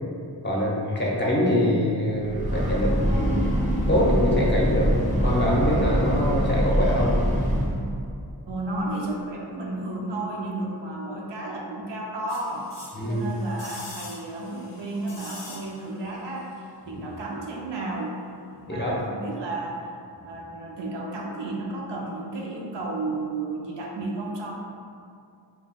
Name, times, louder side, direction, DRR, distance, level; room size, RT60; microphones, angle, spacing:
voice 1, 0.4-3.4 3.9-4.9 5.2-7.1 12.9-13.2 16.9-17.0 18.7-18.9, left 1 dB, 25° left, -5 dB, 0.6 m, -24 dB
Breathing / Train, 2.1-7.9, equal, 20° right, 0.4 m, -24 dB
voice 2, 8.5-12.7 13.1-18.2 18.6-19.8 20.2-24.6, right 2 dB, 85° right, -3 dB, 0.5 m, -32 dB
sound 1, 12.3-16.1 16.4-16.5, left 2 dB, 90° left, 0.6 m, -44 dB
2.3 x 2.3 x 3.8 m, 2.4 s
wide cardioid pair, 55°, 42 cm